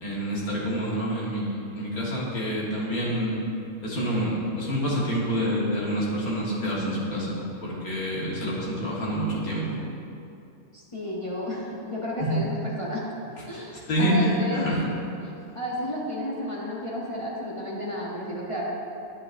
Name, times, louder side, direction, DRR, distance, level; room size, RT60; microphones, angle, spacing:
voice 1, 0.0-3.3 3.8-9.8 12.2-12.4 13.5-13.6 13.9-14.9, equal, 80° left, -5 dB, 2.0 m, -27 dB
voice 2, 10.7-13.0 13.5-14.7 15.2-15.3 15.5-18.6, equal, 25° left, -7 dB, 0.9 m, -32 dB
9.9 x 7.4 x 2.6 m, 2.7 s
omnidirectional pair, 1.5 m